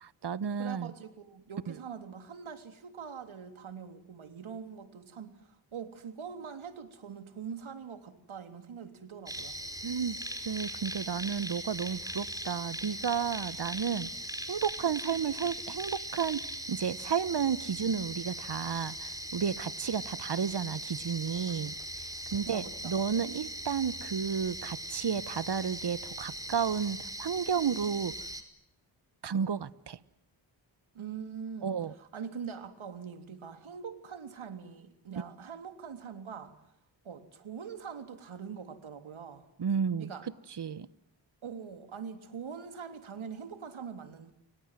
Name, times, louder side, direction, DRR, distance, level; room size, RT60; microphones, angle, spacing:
voice 1, 0.0-0.9 1.7-1.8 9.8-10.2 10.4-14.1 14.5-21.8 22.3-28.1 29.2-30.0 31.6-31.9 39.6-40.1 40.6-40.9, right 7 dB, 55° right, 1.3 m, -32 dB
voice 2, 0.6-9.6 22.5-23.0 30.9-36.5 37.1-39.5 40.0-40.3 41.4-44.3, right 7 dB, 80° right, 3.6 m, -43 dB
sound 1, 9.3-28.4, right 1 dB, 5° right, 4.9 m, -40 dB
30.0 x 25.0 x 7.6 m
cardioid pair, 55°, 47 cm